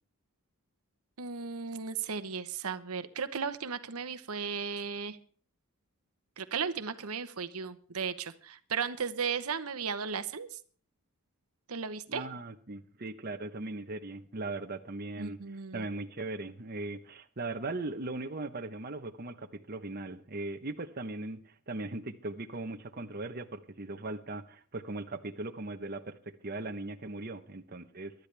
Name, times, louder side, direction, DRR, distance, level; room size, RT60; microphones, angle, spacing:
voice 1, 1.2-5.2 6.4-10.6 11.7-12.2 15.2-15.8, right 6 dB, 75° right, 11 dB, 1.0 m, -35 dB
voice 2, 12.1-28.1, right 2 dB, 40° right, 6 dB, 0.9 m, -39 dB
23.5 x 12.0 x 3.4 m, 0.42 s
head